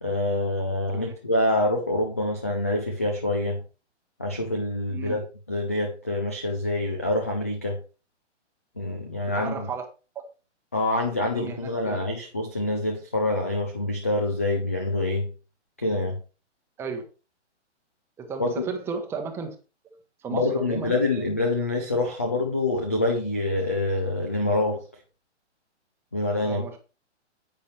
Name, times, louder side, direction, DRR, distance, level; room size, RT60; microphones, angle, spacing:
voice 1, 0.0-3.6 4.2-5.2 5.5-7.8 8.8-9.5 10.7-15.3 15.8-16.2 18.4-18.6 20.3-24.8 26.1-26.7, left 2 dB, 15° left, 0.4 m, -26 dB
voice 2, 4.9-5.2 9.3-9.9 11.1-12.0 16.8-17.0 18.2-19.6 19.8-21.0 26.4-26.8, right 5 dB, 5° right, 0.9 m, -35 dB
10.0 x 8.7 x 3.2 m
hypercardioid pair, 165°, 36 cm